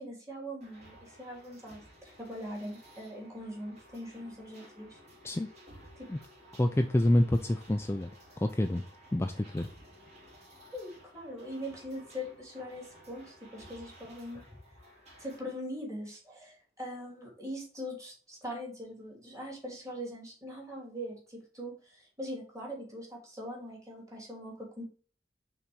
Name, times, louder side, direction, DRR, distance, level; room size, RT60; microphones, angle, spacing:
voice 1, 0.0-5.0 6.0-6.1 10.7-14.4 15.2-24.8, equal, 20° right, -2 dB, 2.8 m, -42 dB
sound 1, 0.6-15.4, equal, 40° right, 3.0 m, -55 dB
voice 2, 6.6-8.1 8.4-8.8 9.1-9.7, left 1 dB, 15° left, 6 dB, 0.4 m, -27 dB
5.8 x 4.0 x 6.2 m, 0.42 s
head